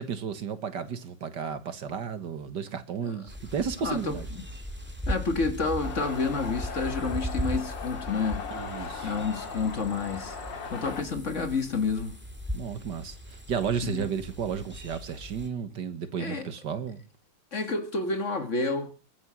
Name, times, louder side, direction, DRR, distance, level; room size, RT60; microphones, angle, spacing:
voice 1, 0.0-4.3 8.5-9.1 12.5-17.0, right 7 dB, 65° right, 2.0 m, -33 dB
sound 1, 3.3-15.5, equal, 5° right, 2.3 m, -38 dB
voice 2, 3.8-4.4 5.1-8.4 9.0-10.4 10.7-12.2 13.8-14.1 16.2-16.5 17.5-18.9, left 4 dB, 40° left, 1.9 m, -29 dB
sound 2, 5.8-11.0, left 5 dB, 75° left, 2.7 m, -38 dB
22.5 x 10.0 x 6.2 m
omnidirectional pair, 2.0 m